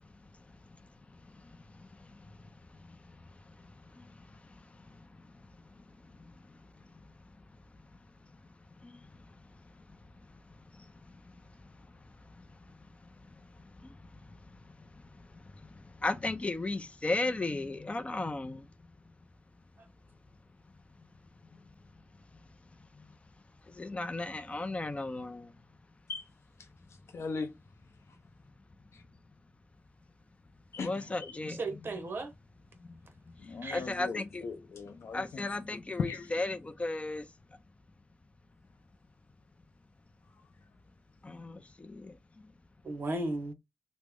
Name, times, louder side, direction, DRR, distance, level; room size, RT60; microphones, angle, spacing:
voice 1, 1.3-2.5 2.8-3.0 3.6-4.6 4.9-5.1 5.8-5.9 6.2-6.6 8.8-9.1 10.7-11.2 12.4-12.5 13.2-13.3 13.8-14.6 14.9-18.7 21.5-21.6 22.9-23.1 23.7-25.5 30.8-31.6 32.8-33.0 33.7-34.4 35.1-37.3 41.2-42.5, left 2 dB, 30° left, 0.4 m, -37 dB
voice 2, 26.6-27.5 28.1-28.2 28.9-29.0 30.7-31.4 33.4-36.4 40.3-40.4, left 5 dB, 85° left, 0.5 m, -39 dB
voice 3, 31.5-32.3 33.6-33.8 42.8-43.5, right 2 dB, 50° right, 0.8 m, -35 dB
3.1 x 2.0 x 3.5 m
wide cardioid pair, 110°, 5 cm